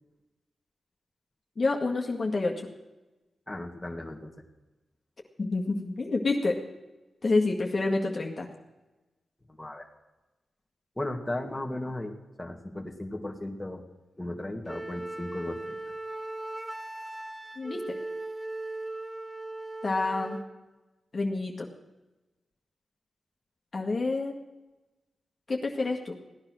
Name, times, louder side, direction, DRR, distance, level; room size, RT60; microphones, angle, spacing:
voice 1, 1.6-2.7 5.4-6.6 7.2-8.5 17.6-17.8 19.8-20.4 21.1-21.7 23.7-24.3 25.5-26.1, left 3 dB, 50° left, 1 dB, 1.9 m, -28 dB
voice 2, 3.5-4.3 9.5-9.9 11.0-13.8 14.2-15.8, left 1 dB, 15° left, 3 dB, 2.2 m, -36 dB
Wind instrument woodwind instrument, 14.7-20.5, right 2 dB, 20° right, 1.5 m, -38 dB
16.5 x 9.8 x 6.3 m, 1.1 s
cardioid pair, 50°, 0 cm